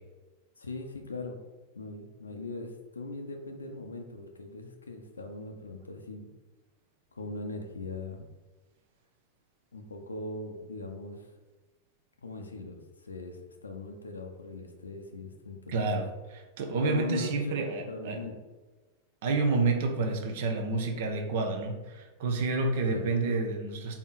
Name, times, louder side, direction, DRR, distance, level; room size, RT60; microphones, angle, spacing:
voice 1, 0.6-1.4 1.7-6.3 7.1-8.2 9.7-11.3 12.2-16.0 16.8-18.4 22.9-23.1, left 2 dB, 75° left, 4 dB, 0.6 m, -40 dB
voice 2, 15.7-16.1 16.6-18.2 19.2-24.0, right 3 dB, 55° right, 4 dB, 0.7 m, -29 dB
4.2 x 2.9 x 4.0 m, 1.2 s
figure-of-eight pair, 90°, 0 cm